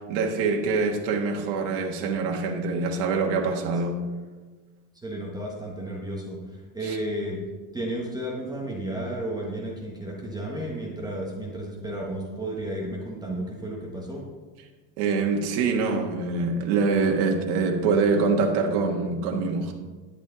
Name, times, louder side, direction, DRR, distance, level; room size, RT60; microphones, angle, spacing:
voice 1, 0.1-4.0 6.8-7.0 15.0-19.7, right 4 dB, 65° right, 2 dB, 1.6 m, -24 dB
voice 2, 5.0-7.4 7.7-14.2, right 1 dB, 10° right, -2 dB, 1.3 m, -33 dB
11.0 x 8.4 x 3.9 m, 1.3 s
cardioid pair, 155°, 45 cm